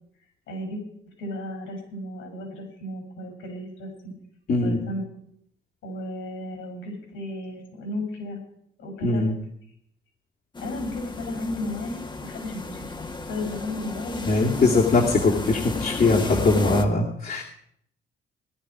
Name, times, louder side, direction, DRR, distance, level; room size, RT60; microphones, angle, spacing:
voice 1, 0.5-0.8 1.2-4.1 4.6-5.0 5.8-8.4 8.8-9.2 10.6-15.3, left 1 dB, 85° left, 2 dB, 7.3 m, -34 dB
voice 2, 4.5-4.8 9.0-9.3 14.2-17.4, left 3 dB, 50° left, -3 dB, 2.5 m, -21 dB
sound 1, 10.5-16.9, left 3 dB, 25° left, 1.6 m, -33 dB
18.0 x 11.0 x 5.0 m, 0.69 s
cardioid pair, 90°, 20 cm